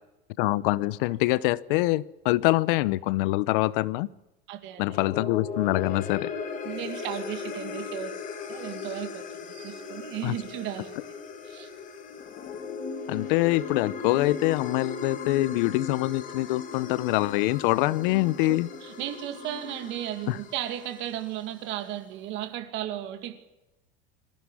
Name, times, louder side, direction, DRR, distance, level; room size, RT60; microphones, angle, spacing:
voice 1, 0.4-4.1 4.8-6.3 10.2-10.4 13.1-18.7 20.3-20.4, left 18 dB, 60° left, 21 dB, 0.7 m, -25 dB
voice 2, 4.5-5.1 6.6-8.1 8.5-11.0 11.4-11.7 18.4-23.4, right 12 dB, 40° right, 7 dB, 2.3 m, -35 dB
sound 1, 4.7-21.2, left 5 dB, 25° left, 2.4 m, -38 dB
21.5 x 15.0 x 9.9 m, 0.98 s
supercardioid pair, 170°, 30 cm